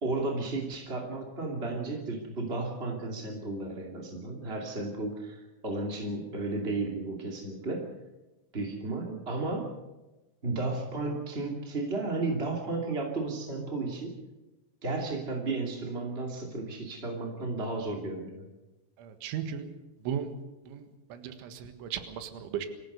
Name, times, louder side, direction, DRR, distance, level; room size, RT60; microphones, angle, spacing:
voice 1, 0.0-7.9 8.5-9.7 10.4-14.1 14.8-18.5, right 3 dB, 20° right, 1 dB, 1.5 m, -33 dB
voice 2, 19.0-19.7 20.1-20.3 20.7-22.7, right 9 dB, 75° right, 8 dB, 4.0 m, -36 dB
25.5 x 15.0 x 6.8 m, 1.1 s
omnidirectional pair, 5.5 m